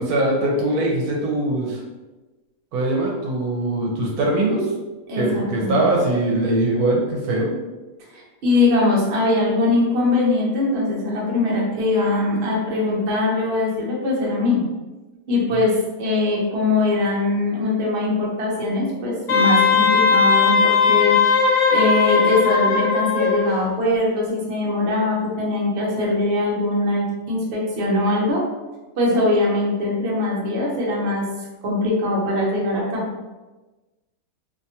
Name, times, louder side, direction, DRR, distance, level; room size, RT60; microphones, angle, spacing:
voice 1, 0.0-1.8 2.7-4.7 5.2-7.5, right 2 dB, 80° right, -2 dB, 1.1 m, -21 dB
voice 2, 5.1-5.8 8.1-14.6 15.3-21.2 21.7-28.4 29.0-31.3 31.6-33.0, left 2 dB, 55° right, -4 dB, 0.9 m, -21 dB
Wind instrument woodwind instrument, 19.3-23.5, left 5 dB, 80° left, 1.1 m, -18 dB
2.8 x 2.2 x 2.7 m, 1.2 s
omnidirectional pair, 1.6 m